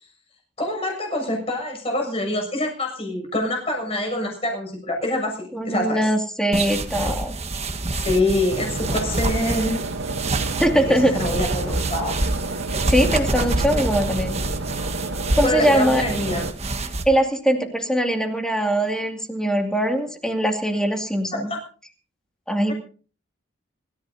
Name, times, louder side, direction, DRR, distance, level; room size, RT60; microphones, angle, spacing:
voice 1, 0.6-6.1 8.0-9.8 11.1-12.1 15.4-16.5 21.5-21.6 22.7-22.8, left 1 dB, 30° left, 2 dB, 6.8 m, -25 dB
voice 2, 5.5-7.3 10.6-11.1 12.9-14.4 15.3-16.0 17.1-21.5 22.5-22.7, equal, 5° left, 3 dB, 2.4 m, -21 dB
sound 1, 6.5-17.0, right 2 dB, 35° right, 1.4 m, -27 dB
sound 2, 8.5-16.5, right 3 dB, 70° right, 1.1 m, -31 dB
26.0 x 14.5 x 2.8 m, 0.39 s
head